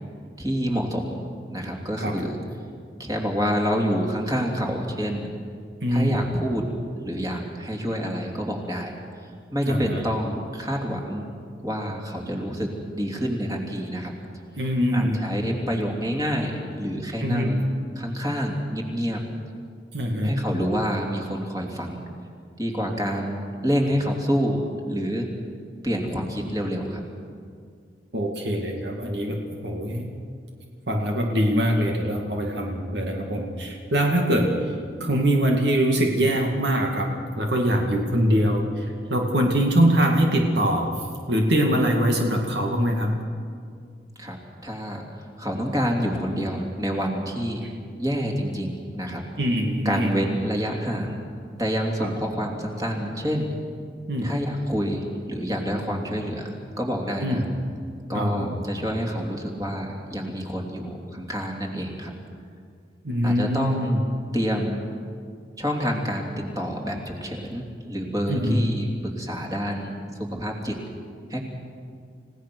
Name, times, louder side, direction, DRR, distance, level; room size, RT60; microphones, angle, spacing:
voice 1, 0.4-1.2 1.5-2.4 3.0-5.3 5.9-6.7 7.0-8.9 9.5-11.3 11.6-14.1 14.9-17.7 18.0-19.2 20.2-22.0 22.6-25.3 25.8-27.0 44.2-44.4 44.6-45.0 45.4-47.6 48.0-49.2 49.8-51.2 51.6-53.5 54.2-57.4 58.1-62.1 63.2-64.0 64.3-64.8 65.6-69.9 70.2-70.8 71.3-71.4, equal, 20° right, 0 dB, 2.9 m, -27 dB
voice 2, 5.8-6.2 9.7-10.0 14.6-15.2 17.2-17.6 19.9-20.3 28.1-30.1 30.9-34.5 35.0-37.1 37.4-40.9 41.3-43.2 49.4-50.1 52.0-52.1 54.1-54.3 57.2-57.5 58.1-58.6 63.0-64.0 68.3-68.6, equal, 75° right, 1 dB, 2.3 m, -23 dB
29.5 x 16.5 x 6.2 m, 2.2 s
head